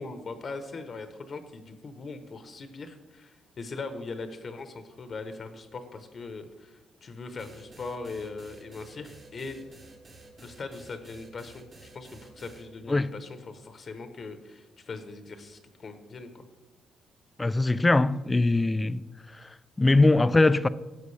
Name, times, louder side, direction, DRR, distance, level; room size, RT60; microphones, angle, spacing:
voice 1, 0.0-9.8 10.4-16.5, left 3 dB, 45° left, 0.8 m, -40 dB
sound 1, 7.4-12.6, right 2 dB, 40° right, 1.3 m, -51 dB
voice 2, 17.4-19.0 19.4-20.7, left 2 dB, 20° left, 0.3 m, -22 dB
10.5 x 7.2 x 3.3 m
cardioid pair, 90°, 0 cm